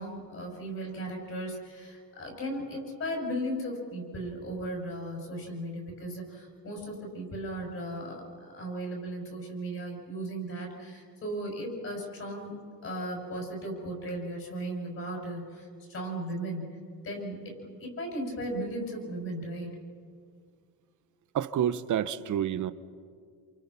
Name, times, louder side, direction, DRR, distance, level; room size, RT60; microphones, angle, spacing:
voice 1, 0.0-12.5 12.8-16.8 17.0-19.8, right 1 dB, 40° left, 0 dB, 6.6 m, -36 dB
voice 2, 21.3-22.7, right 10 dB, 55° right, 13 dB, 1.0 m, -28 dB
29.0 x 27.5 x 5.8 m, 2.1 s
cardioid pair, 175°, 35 cm